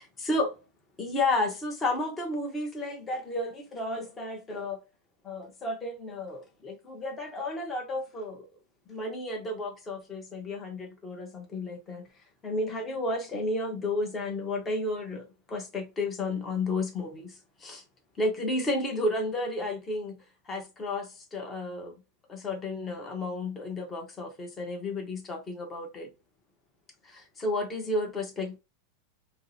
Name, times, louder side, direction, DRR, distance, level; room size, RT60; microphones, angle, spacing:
voice 1, 0.2-0.6 1.0-4.8 5.2-8.5 8.9-12.0 12.4-17.8 18.2-20.1 20.5-22.0 22.3-26.1 27.0-28.6, left 2 dB, 20° left, 0.9 m, -32 dB
4.5 x 2.1 x 2.7 m
supercardioid pair, 140°, 0 cm